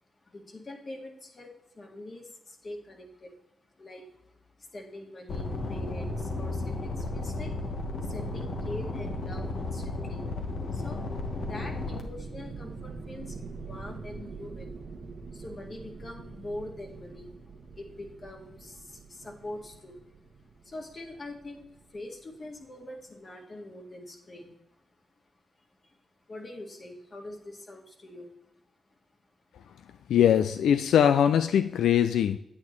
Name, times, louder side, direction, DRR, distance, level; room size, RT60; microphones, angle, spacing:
voice 1, 0.2-10.2 10.7-20.1 20.4-25.0 25.6-26.0 26.3-28.5 28.9-29.3 30.0-30.1, left 1 dB, 45° left, 1 dB, 1.9 m, -44 dB
sound 1, 5.3-12.0, left 2 dB, 65° left, 1.3 m, -33 dB
sound 2, 11.2-22.6, right 4 dB, 70° right, 1.2 m, -45 dB
voice 2, 30.1-32.4, left 9 dB, 90° left, 10 dB, 0.3 m, -22 dB
9.5 x 8.8 x 3.1 m, 0.85 s
cardioid pair, 65°, 0 cm